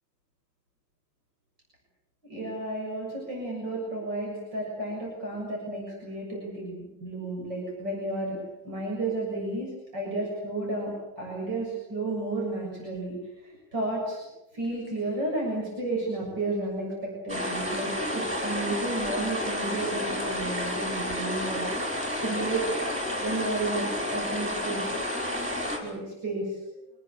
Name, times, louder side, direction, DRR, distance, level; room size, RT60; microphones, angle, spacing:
voice 1, 2.3-8.4 8.6-10.9 11.2-14.2 14.5-21.7 22.2-24.8 25.8-26.7, right 2 dB, 65° right, -2 dB, 8.0 m, -32 dB
sound 1, 17.3-25.8, left 1 dB, 5° right, 5.9 m, -31 dB
27.0 x 20.0 x 8.6 m, 0.98 s
omnidirectional pair, 2.1 m